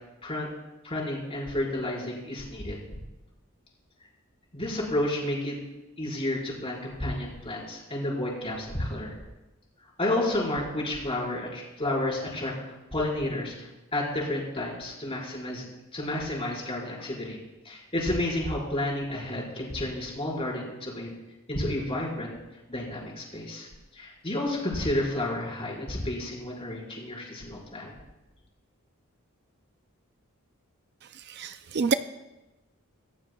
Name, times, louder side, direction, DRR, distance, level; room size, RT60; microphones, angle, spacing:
voice 1, 0.8-2.8 4.5-5.5 6.0-9.1 10.0-12.5 12.9-17.4 17.6-21.1 21.5-22.3 22.7-27.9, left 1 dB, 25° left, -4 dB, 5.1 m, -31 dB
voice 2, 31.4-31.9, right 5 dB, 50° right, 11 dB, 0.5 m, -26 dB
26.0 x 14.5 x 2.3 m, 1.0 s
head